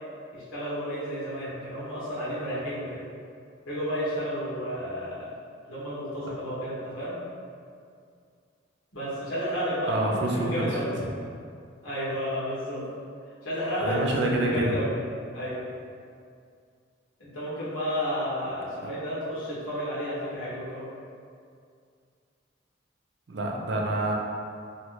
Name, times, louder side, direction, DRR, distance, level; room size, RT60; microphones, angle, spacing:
voice 1, 0.3-3.0 3.7-5.3 5.7-7.1 8.9-10.9 11.8-12.8 13.4-14.0 14.3-14.9 15.3-15.6 17.2-20.8, equal, 90° left, -9 dB, 1.3 m, -32 dB
voice 2, 9.9-10.7 13.8-14.8 18.8-18.9 23.3-24.1, right 1 dB, 60° right, -1 dB, 0.4 m, -27 dB
3.1 x 2.4 x 3.0 m, 2.3 s
head